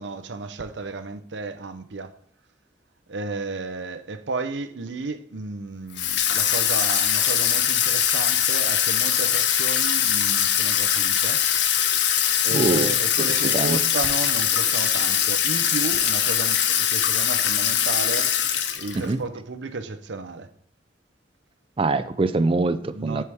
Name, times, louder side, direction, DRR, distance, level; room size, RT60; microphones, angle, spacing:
voice 1, 0.0-2.1 3.1-11.4 12.4-18.4 18.7-20.5 22.9-23.2, right 3 dB, 80° right, 0.7 m, -33 dB
Water tap faucet / Sink (filling or washing), 6.0-19.1, left 9 dB, 70° left, 0.7 m, -22 dB
voice 2, 12.5-13.0 13.5-13.8 18.9-19.2 21.8-23.2, right 3 dB, 30° right, 0.4 m, -23 dB
9.7 x 4.5 x 3.5 m
head